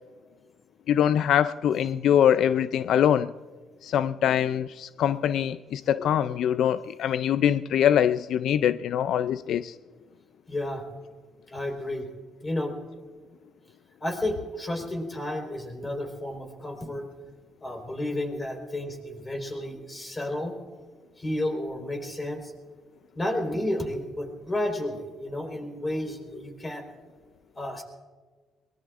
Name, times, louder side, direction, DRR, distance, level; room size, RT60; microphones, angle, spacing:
voice 1, 0.9-3.3 3.8-9.7, left 9 dB, 75° left, 14 dB, 0.3 m, -23 dB
voice 2, 10.5-10.8 11.5-12.1 12.4-12.8 14.0-17.1 17.6-20.6 21.2-22.5 23.2-26.8 27.6-27.8, left 1 dB, 20° left, 3 dB, 4.2 m, -31 dB
23.0 x 20.5 x 2.5 m, 1.4 s
cardioid pair, 90°, 0 cm